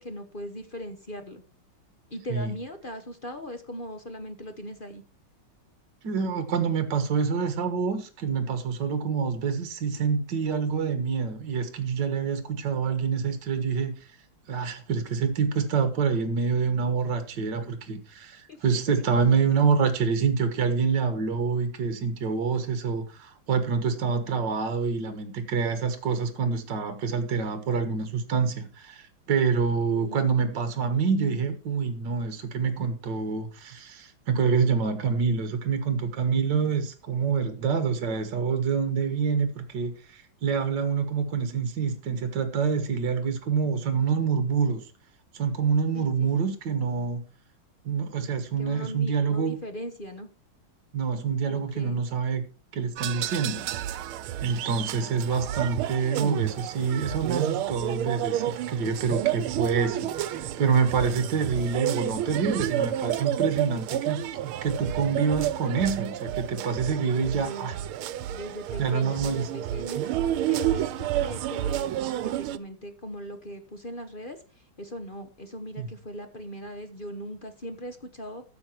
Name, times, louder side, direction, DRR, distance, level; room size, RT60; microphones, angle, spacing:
voice 1, 0.0-1.4 2.1-5.0 18.5-18.6 29.9-30.2 45.9-46.5 48.6-50.3 51.5-52.0 55.1-55.2 61.4-61.8 67.3-67.7 68.3-70.0 70.5-78.4, equal, 30° left, 7 dB, 1.1 m, -39 dB
voice 2, 6.0-14.1 14.5-44.8 45.3-47.2 47.9-49.6 50.9-52.4 52.7-53.6 54.4-60.1 60.4-67.8 68.8-69.5 75.8-75.9, right 5 dB, 60° right, 9 dB, 2.0 m, -26 dB
sound 1, 53.0-72.6, right 12 dB, 85° right, 1.6 m, -30 dB
14.5 x 6.9 x 4.5 m, 0.38 s
omnidirectional pair, 2.3 m